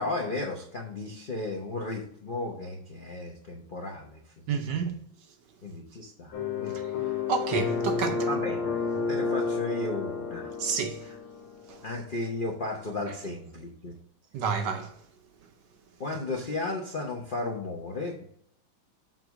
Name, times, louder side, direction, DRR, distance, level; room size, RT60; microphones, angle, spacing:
voice 1, 0.0-4.9 5.6-7.2 8.3-8.7 9.1-10.5 11.0-11.2 11.8-13.9 16.0-18.2, left 2 dB, 55° left, 0.5 m, -35 dB
voice 2, 4.5-5.0 6.7-6.8 7.3-8.3 10.6-11.0 11.7-11.8 14.3-14.9, right 6 dB, 70° right, 1.2 m, -29 dB
sound 1, 6.3-11.5, left 4 dB, 80° left, 1.7 m, -30 dB
7.7 x 3.0 x 6.1 m
omnidirectional pair, 2.3 m